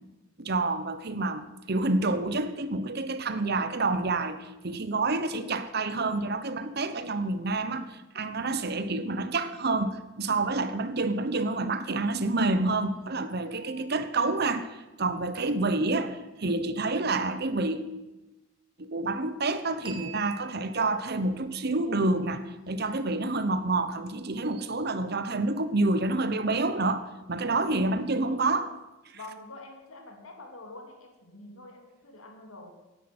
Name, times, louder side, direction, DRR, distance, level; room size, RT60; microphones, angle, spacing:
voice 1, 0.4-17.8 18.8-28.7, right 2 dB, 50° right, 1.0 m, -28 dB
sound 1, 12.7-15.6 19.9-23.4, right 6 dB, 25° right, 1.3 m, -51 dB
voice 2, 27.4-28.0 29.1-32.7, left 2 dB, 85° left, 2.8 m, -46 dB
16.5 x 10.0 x 6.1 m
head